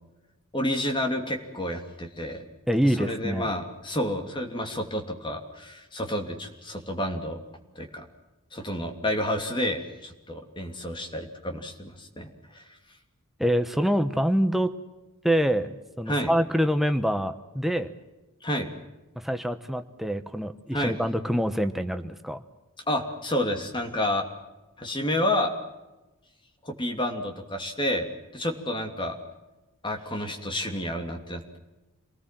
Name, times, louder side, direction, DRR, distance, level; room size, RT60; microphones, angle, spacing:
voice 1, 0.5-2.4 3.0-7.4 7.7-8.0 8.5-12.6 16.1-16.3 18.4-18.7 20.7-20.9 22.9-24.2 24.8-25.5 26.6-28.1 28.3-29.2 29.8-31.6, left 1 dB, 20° left, 4 dB, 2.9 m, -30 dB
voice 2, 2.7-3.5 13.4-14.7 15.2-17.9 19.2-22.4, equal, ahead, 9 dB, 1.0 m, -25 dB
28.0 x 19.5 x 7.6 m, 1.1 s
head